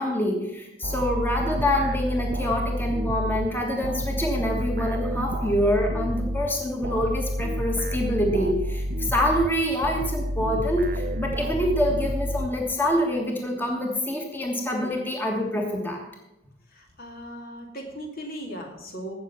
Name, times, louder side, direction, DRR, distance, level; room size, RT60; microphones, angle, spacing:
voice 1, 0.0-16.0, left 1 dB, 10° left, 0 dB, 1.6 m, -26 dB
sound 1, 0.8-13.0, equal, 55° right, 0.8 m, -30 dB
voice 2, 16.7-19.1, equal, 55° left, 2 dB, 2.3 m, -38 dB
16.0 x 6.5 x 5.7 m, 0.93 s
head